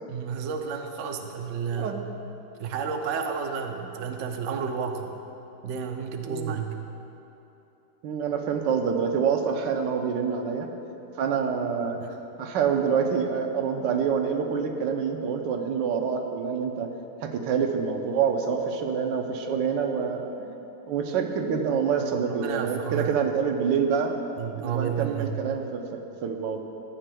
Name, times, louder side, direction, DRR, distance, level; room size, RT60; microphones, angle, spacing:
voice 1, 0.1-2.1 2.6-5.2 5.6-6.8 12.0-12.2 22.0-23.2 24.4-25.4, right 6 dB, 70° right, 4 dB, 0.7 m, -31 dB
voice 2, 8.0-10.7 11.2-12.0 12.4-16.9 17.2-20.6 20.9-24.1 24.6-26.6, right 6 dB, 85° right, 4 dB, 1.4 m, -26 dB
13.0 x 9.0 x 2.3 m, 3.0 s
omnidirectional pair, 1.9 m